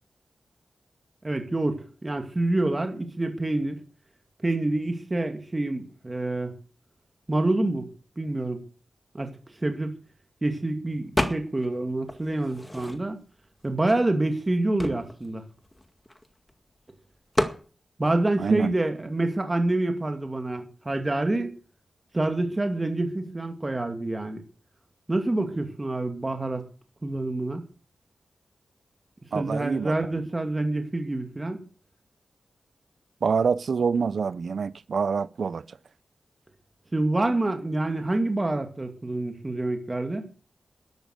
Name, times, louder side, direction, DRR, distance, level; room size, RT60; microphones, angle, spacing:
voice 1, 1.2-3.8 4.4-6.5 7.3-7.9 8.2-8.6 9.1-9.3 9.6-9.9 10.4-13.2 13.6-15.4 18.0-21.5 22.1-24.4 25.1-26.6 27.0-27.6 29.3-31.6 36.9-40.3, right 2 dB, 25° right, 2.4 m, -27 dB
sound 1, 11.2-11.7 12.1-13.3 14.0-14.1 14.3-16.5 17.3-17.6, left 1 dB, 15° left, 2.0 m, -30 dB
voice 2, 18.4-18.7 29.3-29.9 33.2-35.6, right 5 dB, 75° right, 0.7 m, -26 dB
12.5 x 12.0 x 6.7 m
wide cardioid pair, 85°, 0 cm